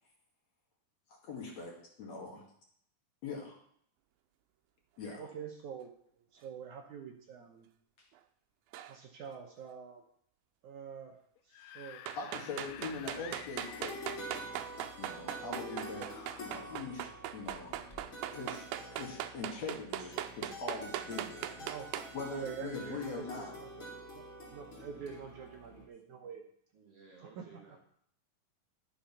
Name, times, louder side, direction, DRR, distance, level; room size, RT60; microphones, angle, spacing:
voice 1, 1.2-2.4 3.2-3.6 5.0-5.2 8.0-8.1 12.2-14.1 15.0-17.8 18.3-21.7 22.1-23.5 26.1-26.2, left 4 dB, 50° left, -1 dB, 2.9 m, -42 dB
voice 2, 5.2-5.9 6.2-7.7 8.9-10.0 10.6-11.2 11.5-12.0 21.6-21.9 22.2-23.9 24.1-24.2 24.5-26.4 27.4-27.5, right 7 dB, 70° right, 2 dB, 2.1 m, -46 dB
sound 1, 8.7-9.0 12.1-22.1, right 12 dB, 90° right, 2.6 m, -40 dB
Screaming / Screech, 11.4-14.7 15.7-16.8, left 11 dB, 85° left, 2.5 m, -51 dB
sound 2, 12.7-25.9, equal, 25° left, 2.7 m, -48 dB
voice 3, 26.7-27.8, right 3 dB, 50° right, -1 dB, 2.2 m, -57 dB
12.0 x 7.1 x 5.7 m, 0.66 s
omnidirectional pair, 4.2 m